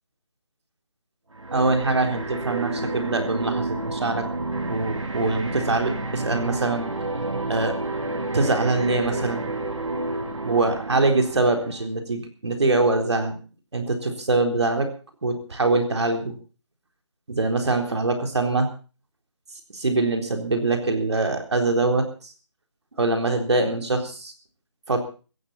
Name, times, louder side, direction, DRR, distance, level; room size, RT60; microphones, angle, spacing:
sound 1, 1.3-11.9, right 2 dB, 80° right, 3.5 m, -30 dB
voice 1, 1.5-4.3 4.6-6.9 7.5-7.8 8.3-9.4 10.4-13.4 13.7-14.9 15.2-16.4 17.3-18.7 19.7-22.3 23.0-24.3 24.9-25.0, right 2 dB, 60° right, 4 dB, 3.8 m, -23 dB
17.0 x 15.0 x 4.2 m, 0.36 s
figure-of-eight pair, 165°, 16 cm